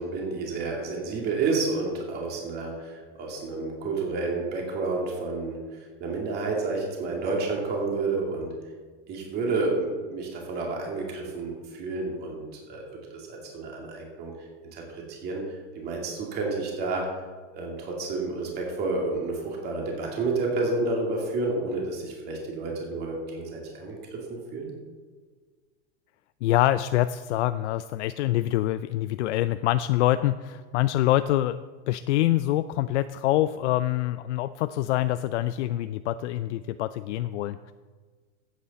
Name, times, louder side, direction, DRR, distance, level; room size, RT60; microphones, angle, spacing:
voice 1, 0.0-8.5 9.1-12.9 13.1-14.3 14.7-15.4 15.7-17.1 17.5-24.7, right 3 dB, 30° right, -1 dB, 2.4 m, -30 dB
voice 2, 26.4-31.6 31.9-37.7, left 14 dB, 80° left, 12 dB, 0.5 m, -25 dB
14.0 x 8.3 x 4.2 m, 1.5 s
supercardioid pair, 165°, 35 cm